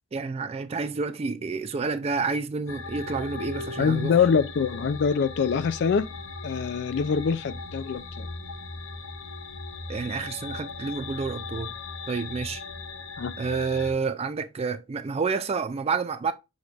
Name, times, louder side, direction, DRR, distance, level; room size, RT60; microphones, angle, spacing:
voice 1, 0.1-4.2 9.9-11.7 12.1-12.6 13.4-16.3, right 4 dB, 30° right, 0.3 m, -29 dB
sound 1, 2.7-13.9, left 3 dB, 75° left, 0.8 m, -38 dB
voice 2, 3.8-6.1 6.4-8.3 13.2-13.3, left 6 dB, 55° left, 0.3 m, -24 dB
6.3 x 2.4 x 3.2 m
head